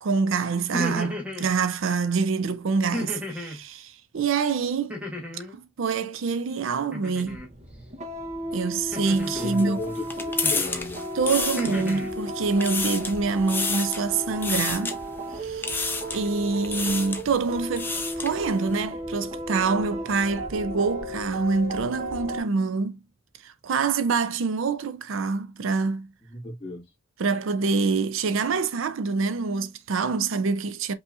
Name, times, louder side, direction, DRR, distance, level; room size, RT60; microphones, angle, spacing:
voice 1, 0.0-5.0 5.5-7.4 8.5-9.8 11.1-15.0 15.3-15.7 16.1-23.0 23.4-26.1 27.2-30.9, right 4 dB, 65° right, 0.4 m, -26 dB
sound 1, 0.6-1.5 2.9-3.6 4.9-5.6 6.9-7.5 8.9-9.6 10.4-10.8 11.3-12.1, left 1 dB, 5° right, 1.1 m, -33 dB
sound 2, 7.2-22.4, equal, 35° right, 0.8 m, -34 dB
sound 3, 9.0-12.1 12.5-13.2 13.5-14.0 14.4-14.9 15.6-16.3 16.6-17.2 17.6-18.4, left 4 dB, 10° left, 0.5 m, -30 dB
voice 2, 9.3-11.0 26.2-26.9, left 2 dB, 25° left, 1.8 m, -35 dB
5.4 x 2.8 x 2.4 m
head